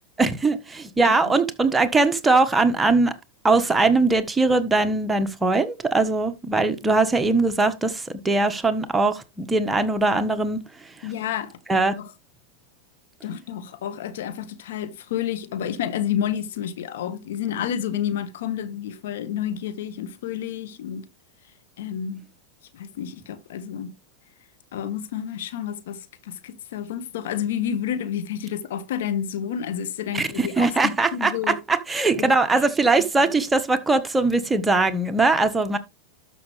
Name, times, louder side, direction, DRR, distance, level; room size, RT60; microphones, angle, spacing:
voice 1, 0.2-3.1 3.4-10.6 11.7-11.9 30.1-35.8, right 3 dB, 10° right, 1.4 m, -21 dB
voice 2, 11.0-11.6 12.0-12.1 13.2-21.1 21.8-22.2 22.7-23.9 24.7-31.6 32.2-32.6, left 9 dB, 70° left, 1.5 m, -30 dB
12.0 x 6.2 x 3.4 m
hypercardioid pair, 105°, 0 cm